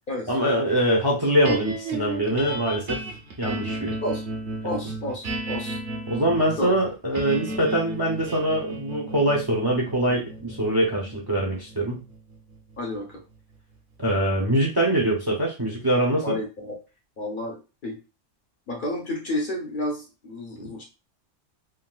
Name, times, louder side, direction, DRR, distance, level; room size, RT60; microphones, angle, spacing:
voice 1, 0.3-3.0 3.4-3.9 6.1-12.0 14.0-16.4 20.6-20.7, right 1 dB, 30° right, -2 dB, 0.5 m, -23 dB
sound 1, 1.4-13.7, right 2 dB, 60° right, 0.8 m, -34 dB
voice 2, 4.6-5.8 6.6-6.7 12.8-13.2 16.2-16.8 17.2-18.0 18.7-20.8, left 1 dB, 50° left, 0 dB, 0.7 m, -31 dB
3.5 x 2.2 x 2.2 m, 0.30 s
omnidirectional pair, 1.2 m